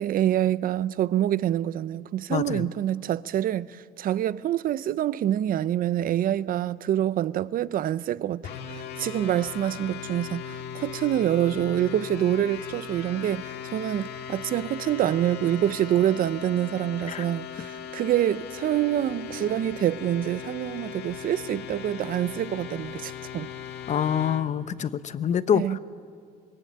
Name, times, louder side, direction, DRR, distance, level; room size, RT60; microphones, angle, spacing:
voice 1, 0.0-8.4 8.7-23.5 25.5-25.8, right 11 dB, 55° right, 0.7 m, -26 dB
voice 2, 2.3-2.7 17.1-17.3 23.9-25.8, left 8 dB, 45° left, 0.9 m, -26 dB
sound 1, 8.4-24.5, left 8 dB, 75° left, 2.0 m, -38 dB
26.5 x 22.0 x 8.7 m
cardioid pair, 110°, 17 cm